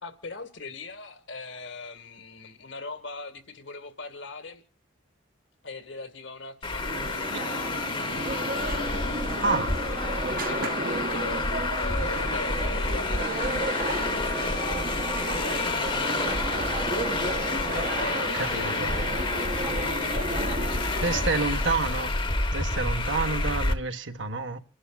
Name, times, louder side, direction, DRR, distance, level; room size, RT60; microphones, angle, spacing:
voice 1, 0.0-4.6 5.6-7.9 8.8-11.4 11.8-16.7 18.0-22.0, left 3 dB, 70° left, 2.0 m, -41 dB
Traffic noise roadway noise, 6.6-23.7, left 3 dB, 25° left, 1.0 m, -29 dB
sound 1, 6.8-21.3, right 2 dB, 45° right, 0.9 m, -33 dB
voice 2, 9.4-9.8 18.2-18.9 21.0-22.1 22.5-24.6, right 4 dB, 75° right, 1.4 m, -29 dB
sound 2, 15.8-21.7, right 3 dB, 25° right, 0.7 m, -41 dB
29.0 x 11.0 x 2.4 m
head